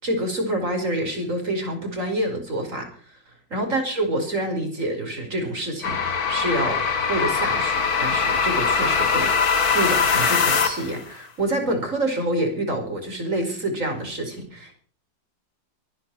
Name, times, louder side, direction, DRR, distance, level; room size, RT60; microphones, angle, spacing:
voice 1, 0.0-3.2 3.5-6.8 7.1-14.8, right 1 dB, 45° right, 4 dB, 5.5 m, -27 dB
sound 1, 5.8-11.0, left 5 dB, 55° left, 2.2 m, -22 dB
24.0 x 10.5 x 4.7 m, 0.44 s
omnidirectional pair, 2.0 m